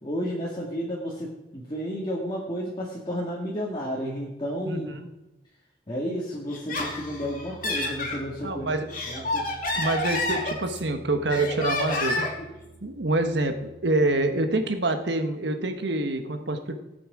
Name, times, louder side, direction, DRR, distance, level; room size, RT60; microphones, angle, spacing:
voice 1, 0.0-5.0 5.9-8.7 9.1-9.4, equal, 25° left, -4 dB, 1.8 m, -32 dB
voice 2, 4.6-5.1 8.4-8.9 9.8-12.3 12.8-16.8, right 2 dB, 65° right, 6 dB, 1.3 m, -26 dB
sound 1, 6.3-15.1, right 2 dB, ahead, 2.5 m, -49 dB
Laughter, 6.5-8.2 8.7-10.9 11.3-12.4, left 2 dB, 45° left, 2.5 m, -29 dB
17.5 x 7.9 x 4.9 m, 0.99 s
head